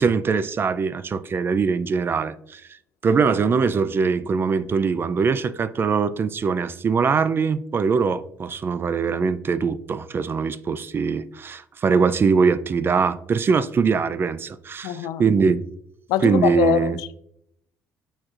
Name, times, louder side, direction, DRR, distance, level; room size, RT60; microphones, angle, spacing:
voice 1, 0.0-2.6 3.0-15.6 16.2-17.0, right 5 dB, 35° right, 0.4 m, -22 dB
voice 2, 14.8-15.2 16.1-17.2, left 12 dB, 80° left, 0.3 m, -23 dB
6.3 x 6.1 x 2.5 m
supercardioid pair, 80°, 6 cm